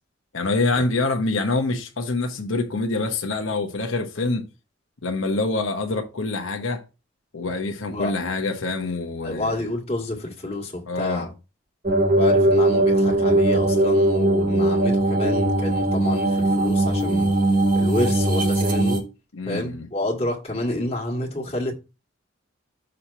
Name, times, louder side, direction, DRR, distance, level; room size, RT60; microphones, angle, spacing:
voice 1, 0.3-4.4 5.0-6.8 7.3-9.6 10.9-11.3 19.3-19.9, left 3 dB, 80° left, 1.0 m, -25 dB
voice 2, 9.2-11.3 12.2-17.3 17.7-19.0 19.5-21.7, left 1 dB, 30° left, 1.8 m, -29 dB
sound 1, 11.9-19.0, right 1 dB, 45° right, 1.3 m, -20 dB
6.5 x 2.9 x 5.5 m
head